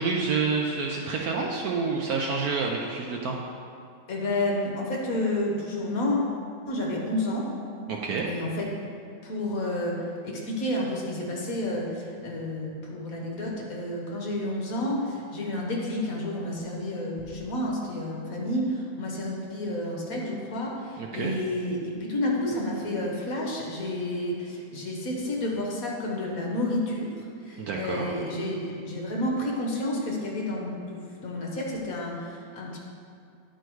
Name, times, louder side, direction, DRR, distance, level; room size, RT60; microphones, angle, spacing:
voice 1, 0.0-3.4 7.9-8.3 21.0-21.3 27.6-28.1, right 4 dB, 65° right, 0 dB, 1.0 m, -28 dB
voice 2, 4.1-6.2 6.7-7.5 8.3-8.7 9.2-32.8, left 1 dB, 55° left, -2 dB, 1.4 m, -30 dB
10.0 x 4.6 x 4.6 m, 2.4 s
omnidirectional pair, 2.0 m